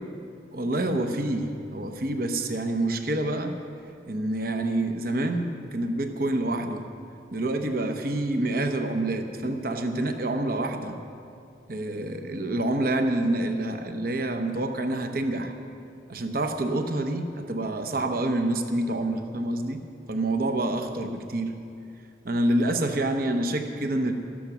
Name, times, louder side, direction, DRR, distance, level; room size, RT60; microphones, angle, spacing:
voice 1, 0.5-3.5 4.1-6.8 7.3-11.0 11.7-15.5 16.1-19.8 20.1-21.5 22.2-24.1, right 1 dB, 55° right, 6 dB, 0.9 m, -27 dB
13.5 x 13.5 x 6.1 m, 2.5 s
head